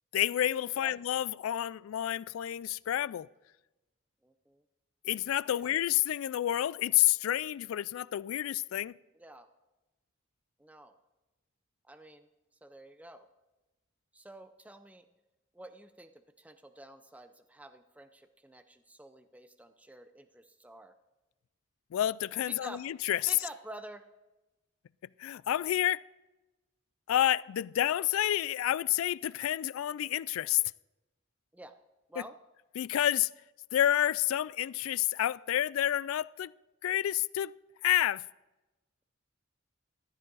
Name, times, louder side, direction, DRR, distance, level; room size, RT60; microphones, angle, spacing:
voice 1, 0.1-3.3 5.1-9.0 21.9-23.2 25.2-26.0 27.1-30.6 32.8-33.3 33.7-36.5 36.8-37.5 37.8-38.2, left 12 dB, 75° left, 0.3 m, -29 dB
voice 2, 4.2-4.6 5.5-5.7 9.1-9.5 10.6-11.0 11.9-12.3 12.6-13.3 14.1-15.1 15.5-16.1 16.4-20.9 22.5-22.8 23.3-24.0 31.5-31.7 32.1-32.3, right 1 dB, 5° right, 0.5 m, -49 dB
14.5 x 12.0 x 4.0 m
head